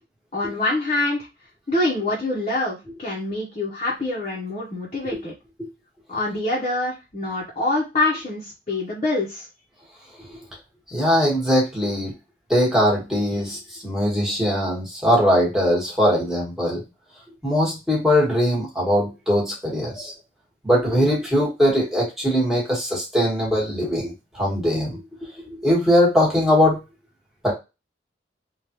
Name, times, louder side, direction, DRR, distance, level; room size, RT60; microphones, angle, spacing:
voice 1, 0.3-1.3 1.7-5.3 6.1-9.5, left 2 dB, 35° left, -6 dB, 0.8 m, -25 dB
voice 2, 10.9-12.1 12.5-16.8 17.4-20.1 20.6-25.0 25.4-26.8 27.4-27.5, equal, 5° right, -4 dB, 1.3 m, -21 dB
3.5 x 2.3 x 2.9 m, 0.26 s
head